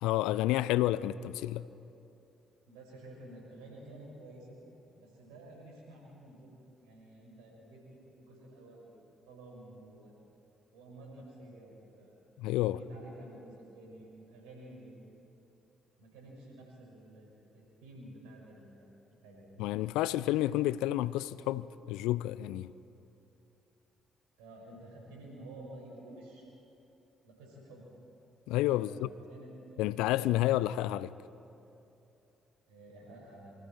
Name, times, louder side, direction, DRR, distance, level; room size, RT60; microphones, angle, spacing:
voice 1, 0.0-1.7 12.4-12.8 19.6-22.7 28.5-29.1 29.8-31.1, left 15 dB, 75° left, 18 dB, 0.4 m, -30 dB
voice 2, 2.7-4.6 4.9-6.5 6.8-8.9 9.2-10.1 10.7-12.1 12.5-15.0 16.0-18.9 19.2-19.4 24.4-26.4 27.2-27.9 28.7-30.1 32.7-33.5, right 1 dB, 75° right, -1 dB, 5.6 m, -51 dB
27.5 x 24.5 x 4.4 m, 2.9 s
hypercardioid pair, 45°, 0 cm